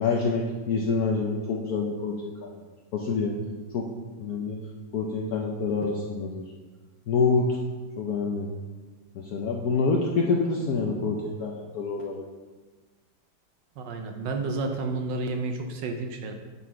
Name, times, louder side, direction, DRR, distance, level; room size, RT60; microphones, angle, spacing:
voice 1, 0.0-2.5 2.9-3.4 3.7-3.9 4.2-4.6 4.9-6.4 7.1-7.5 8.0-8.5 9.1-12.2, left 4 dB, 70° left, 0 dB, 0.9 m, -27 dB
voice 2, 13.8-16.3, right 3 dB, 70° right, 5 dB, 1.2 m, -31 dB
7.5 x 4.1 x 4.6 m, 1.3 s
omnidirectional pair, 2.2 m